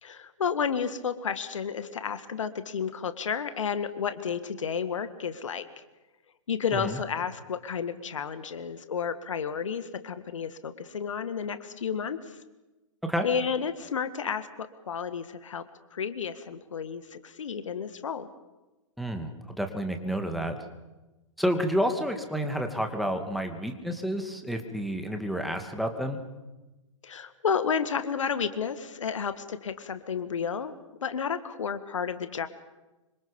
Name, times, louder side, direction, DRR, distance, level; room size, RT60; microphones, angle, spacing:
voice 1, 0.0-5.6 6.5-12.2 13.2-15.6 15.9-18.3 27.0-30.7 31.0-32.5, left 6 dB, 65° left, 11 dB, 1.8 m, -31 dB
voice 2, 19.0-19.3 19.6-20.6 21.4-26.2, equal, ahead, 5 dB, 2.4 m, -30 dB
27.0 x 25.5 x 5.4 m, 1.1 s
figure-of-eight pair, 110°, 17 cm